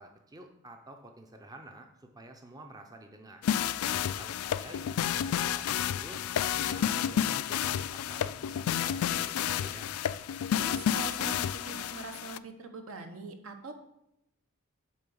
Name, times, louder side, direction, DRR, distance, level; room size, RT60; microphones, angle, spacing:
voice 1, 0.0-3.4 3.8-6.2 6.5-9.9, right 1 dB, 15° right, 4 dB, 0.6 m, -50 dB
sound 1, 3.4-12.4, left 9 dB, 80° left, 0.3 m, -30 dB
voice 2, 10.5-13.7, right 3 dB, 65° right, 5 dB, 1.0 m, -42 dB
8.6 x 3.8 x 7.0 m, 0.82 s
head